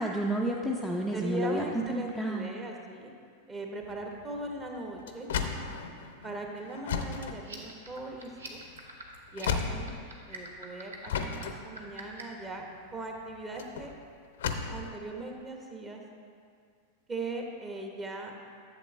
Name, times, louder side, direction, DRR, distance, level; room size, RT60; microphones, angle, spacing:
voice 1, 0.0-2.5, right 1 dB, ahead, -2 dB, 0.5 m, -30 dB
voice 2, 1.1-3.1 3.5-5.3 6.2-8.6 9.3-9.9 10.3-12.6 12.9-13.9 14.7-16.0 17.1-18.4, right 2 dB, 20° right, 1 dB, 1.1 m, -39 dB
sound 1, 3.8-10.5 11.1-14.9, left 6 dB, 60° left, 0.6 m, -35 dB
sound 2, 7.4-12.4, right 2 dB, 70° right, 1.0 m, -45 dB
11.0 x 7.2 x 3.2 m, 2.2 s
figure-of-eight pair, 90°, 0 cm